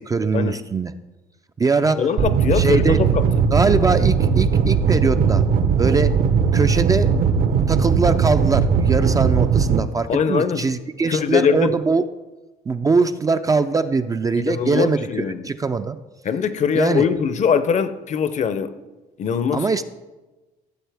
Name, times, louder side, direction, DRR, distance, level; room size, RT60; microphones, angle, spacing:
voice 1, 0.1-0.9 1.6-2.1 2.5-3.0 3.5-5.4 5.8-6.2 6.5-7.1 7.7-12.0 12.7-16.0 16.7-17.1 19.5-19.8, right 4 dB, 20° right, 0.4 m, -21 dB
voice 2, 2.0-3.2 10.1-10.6 11.1-11.7 14.4-15.4 16.2-18.8 19.2-19.7, left 7 dB, 45° left, 0.6 m, -21 dB
sound 1, 2.2-9.8, right 6 dB, 60° right, 0.9 m, -18 dB
14.5 x 7.2 x 3.4 m
cardioid pair, 110°, 17 cm